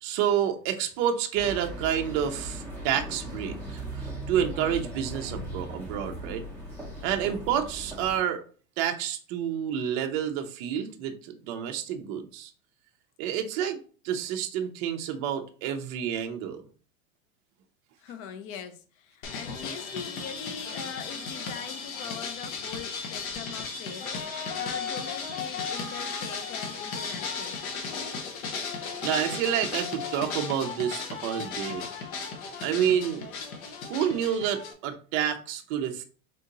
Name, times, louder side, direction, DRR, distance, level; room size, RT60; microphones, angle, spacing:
voice 1, 0.0-6.5 7.0-8.4 8.8-12.5 13.2-13.8 14.0-16.6 29.0-31.9 32.6-33.3 33.9-36.0, right 9 dB, 35° right, 5 dB, 0.5 m, -29 dB
sound 1, 1.3-8.2, right 1 dB, 5° left, 0.7 m, -38 dB
voice 2, 18.0-27.6, left 8 dB, 40° left, 8 dB, 0.6 m, -42 dB
sound 2, 19.2-34.7, left 5 dB, 80° left, 1.0 m, -35 dB
3.7 x 2.8 x 3.8 m, 0.40 s
supercardioid pair, 155°, 41 cm